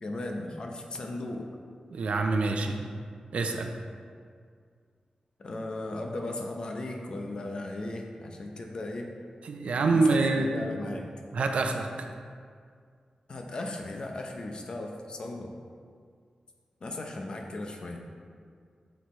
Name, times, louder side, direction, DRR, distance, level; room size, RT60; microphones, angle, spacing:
voice 1, 0.0-1.5 2.6-2.8 5.4-9.1 9.8-11.1 13.3-15.5 16.8-18.1, left 2 dB, 45° left, 2 dB, 0.7 m, -37 dB
voice 2, 1.9-2.7 3.3-3.7 9.4-10.5 11.3-12.1, right 3 dB, 75° right, 4 dB, 0.6 m, -26 dB
8.1 x 6.5 x 3.2 m, 2.1 s
wide cardioid pair, 170°, 2 cm